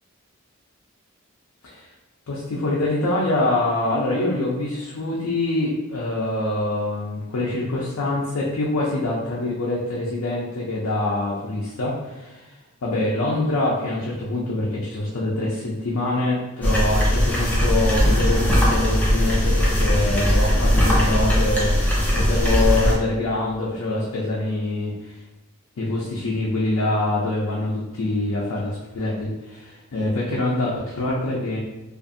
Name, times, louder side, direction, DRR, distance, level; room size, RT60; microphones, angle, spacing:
voice 1, 2.3-25.2 25.8-31.6, left 2 dB, 90° left, -5 dB, 0.5 m, -25 dB
sound 1, 16.6-22.9, equal, 10° left, 0.5 m, -19 dB
2.6 x 2.5 x 2.5 m, 1.0 s
head